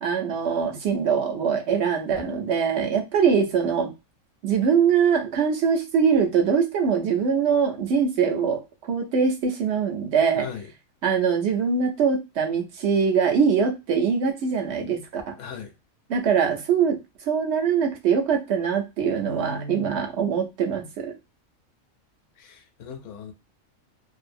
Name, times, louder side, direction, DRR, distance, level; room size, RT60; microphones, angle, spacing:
voice 1, 0.0-3.9 4.4-10.5 11.0-15.4 16.1-17.0 17.3-21.1, right 6 dB, 60° right, 0.9 m, -23 dB
voice 2, 10.3-10.7 15.4-15.7 19.2-20.1 22.4-23.3, left 3 dB, 70° left, 0.9 m, -38 dB
2.7 x 2.3 x 2.5 m
omnidirectional pair, 1.4 m